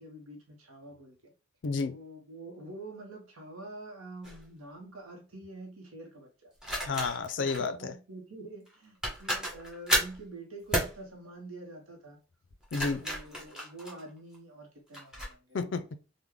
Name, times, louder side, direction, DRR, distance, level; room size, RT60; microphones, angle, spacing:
voice 1, 0.0-1.3 1.8-6.5 7.4-12.2 13.0-15.7, right 2 dB, 85° right, 0.8 m, -46 dB
voice 2, 1.6-2.0 6.8-7.7 12.7-13.0 15.5-16.0, left 4 dB, 60° left, 0.4 m, -31 dB
sound 1, 4.2-4.4 6.6-7.6 8.7-8.8 9.0-10.2 10.7-11.0 12.5-14.4 14.9-15.3, equal, 5° right, 0.8 m, -32 dB
3.5 x 2.1 x 3.1 m
head